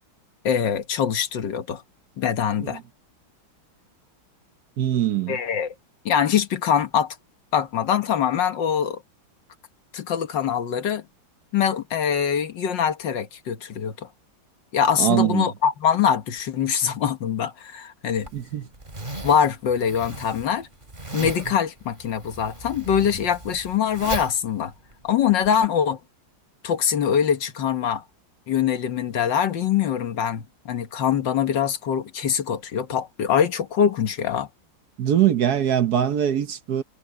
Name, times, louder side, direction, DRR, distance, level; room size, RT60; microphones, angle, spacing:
voice 1, 0.4-1.8 2.2-2.8 5.3-5.7 6.0-7.2 7.5-9.0 9.9-11.0 11.5-14.1 14.7-18.3 19.2-20.7 21.1-24.7 25.0-26.0 26.6-28.0 28.5-34.5, left 8 dB, 65° left, 1.8 m, -23 dB
voice 2, 4.8-5.4 15.0-15.5 18.3-18.7 21.2-21.5 35.0-36.8, right 10 dB, 60° right, 1.3 m, -22 dB
Zipper (clothing), 18.1-25.6, right 2 dB, 25° right, 3.3 m, -37 dB
omnidirectional pair, 2.2 m